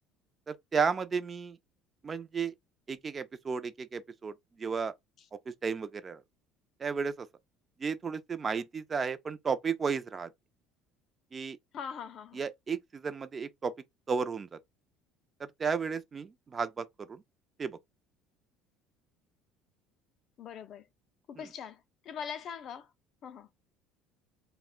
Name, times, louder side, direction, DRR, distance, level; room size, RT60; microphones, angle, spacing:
voice 1, 0.5-1.6 2.0-2.5 2.9-4.9 5.5-6.2 6.8-7.3 7.8-10.3 11.3-11.6 12.3-13.7 14.1-14.6 15.4-17.2 17.6-17.8 21.4-21.5, right 5 dB, 25° right, 0.4 m, -33 dB
voice 2, 11.7-12.4 20.4-20.9 21.3-22.9 23.2-23.5, left 7 dB, 45° left, 0.4 m, -42 dB
2.4 x 2.1 x 3.5 m
cardioid pair, 140°, 0 cm